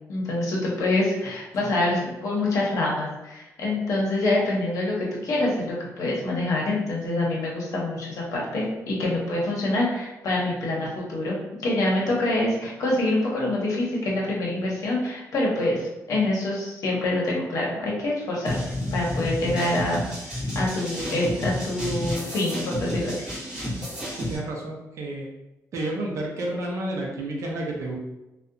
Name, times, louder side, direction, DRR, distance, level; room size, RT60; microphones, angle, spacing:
voice 1, 0.1-20.0 20.5-23.2, left 2 dB, 60° left, -3 dB, 0.7 m, -26 dB
sound 1, 18.4-24.4, left 1 dB, 15° right, 0.9 m, -31 dB
voice 2, 24.1-25.3 25.7-28.0, right 1 dB, 55° right, -1 dB, 0.5 m, -30 dB
2.7 x 2.1 x 2.5 m, 0.97 s
wide cardioid pair, 180°, 6 cm